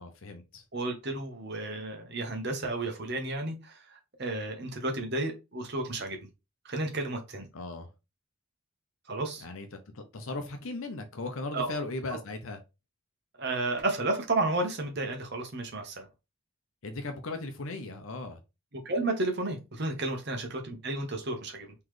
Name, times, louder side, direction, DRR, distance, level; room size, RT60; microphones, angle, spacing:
voice 1, 0.0-0.6 7.5-7.9 9.4-9.7 9.9-12.6 16.8-18.4, left 2 dB, 70° left, 0.7 m, -37 dB
voice 2, 0.7-6.2 6.6-7.5 9.1-9.4 11.5-11.8 13.4-16.1 18.7-21.7, right 2 dB, 50° right, 1.1 m, -32 dB
3.9 x 3.2 x 3.2 m
head